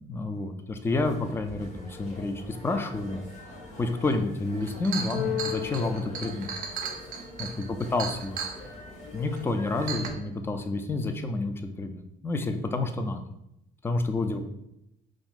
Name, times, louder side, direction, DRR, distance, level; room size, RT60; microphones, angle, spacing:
voice 1, 0.1-3.2 3.8-6.5 7.4-8.4 9.1-13.2 13.8-14.4, left 2 dB, 15° left, 7 dB, 0.3 m, -29 dB
sound 1, 0.9-10.2, left 1 dB, 45° left, 0.8 m, -44 dB
Chink clink, 4.2-4.3 4.6-8.6 9.4-9.5 9.9-10.1, right 6 dB, 50° right, 0.4 m, -35 dB
Keyboard (musical), 5.1-7.2, left 11 dB, 90° left, 0.7 m, -35 dB
2.6 x 2.5 x 3.5 m, 0.82 s
cardioid pair, 110°, 17 cm